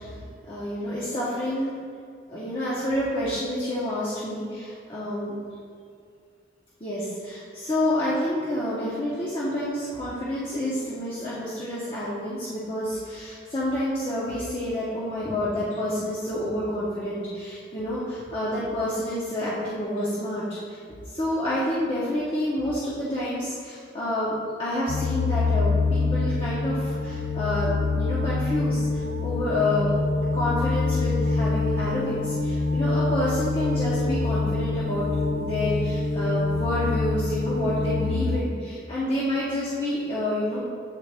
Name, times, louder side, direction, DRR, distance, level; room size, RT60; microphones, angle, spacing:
voice 1, 0.0-1.8 2.3-5.3 6.8-30.0 30.3-40.6, left 1 dB, 30° left, -9 dB, 0.8 m, -28 dB
sound 1, 24.9-38.4, left 3 dB, 65° left, 0.4 m, -25 dB
8.2 x 3.4 x 3.4 m, 2.3 s
head